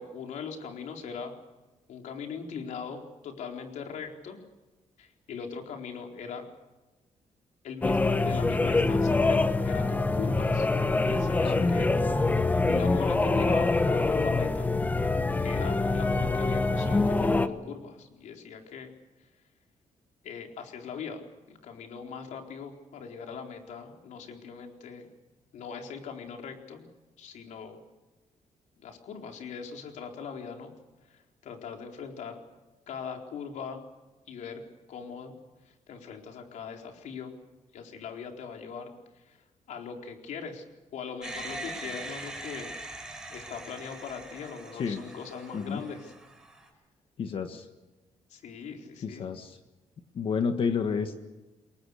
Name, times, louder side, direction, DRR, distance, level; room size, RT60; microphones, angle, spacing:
voice 1, 0.0-1.3 1.9-4.4 5.0-6.5 7.6-10.7 11.0-11.9 12.7-14.7 15.4-18.9 20.2-25.1 25.5-26.9 27.2-27.8 28.8-30.7 31.1-32.4 32.9-33.8 34.3-34.6 34.9-35.3 35.9-37.4 37.7-38.9 39.1-39.4 39.7-40.6 40.9-42.7 43.3-46.1 48.3-49.2, left 6 dB, 80° left, 3 dB, 4.3 m, -40 dB
sound 1, 7.8-17.5, left 3 dB, 15° left, 1.2 m, -25 dB
sound 2, 41.2-46.7, right 1 dB, 5° right, 4.9 m, -42 dB
voice 2, 47.2-47.6 49.0-49.6 50.1-51.2, left 6 dB, 45° left, 6 dB, 1.7 m, -30 dB
29.5 x 22.5 x 6.6 m, 1.1 s
cardioid pair, 170°, 12 cm